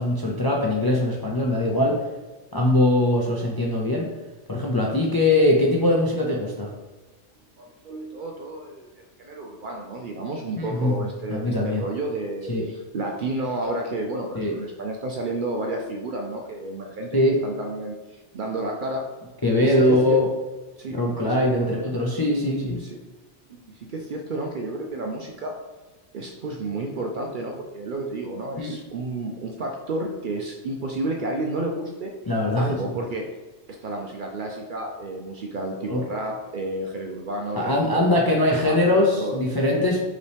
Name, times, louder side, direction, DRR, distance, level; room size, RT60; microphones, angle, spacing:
voice 1, 0.0-2.0 2.5-4.1 4.5-6.7 10.6-11.8 12.5-12.6 14.3-14.5 17.1-17.4 19.4-20.3 20.9-22.8 28.6-28.7 32.3-32.7 35.7-36.0 37.5-40.0, left 1 dB, 35° left, -2 dB, 0.4 m, -22 dB
voice 2, 7.6-19.1 19.6-20.2 20.8-21.0 21.2-21.9 22.9-23.0 23.5-25.6 26.1-32.1 32.6-33.3 33.8-38.2 38.6-39.4, right 2 dB, 60° right, 1 dB, 0.6 m, -31 dB
5.2 x 3.0 x 3.4 m, 1.2 s
omnidirectional pair, 1.2 m